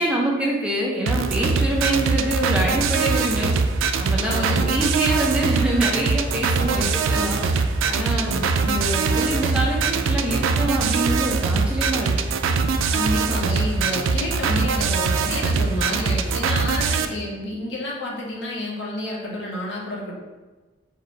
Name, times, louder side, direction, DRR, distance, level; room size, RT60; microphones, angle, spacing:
voice 1, 0.0-3.5 4.0-12.1, right 1 dB, 5° right, -3 dB, 0.6 m, -25 dB
sound 1, 1.1-17.1, right 4 dB, 90° right, 0.3 m, -22 dB
voice 2, 4.2-4.7 6.8-6.9 8.1-8.5 12.9-20.1, left 1 dB, 70° left, -3 dB, 1.0 m, -29 dB
4.7 x 2.4 x 4.5 m, 1.2 s
head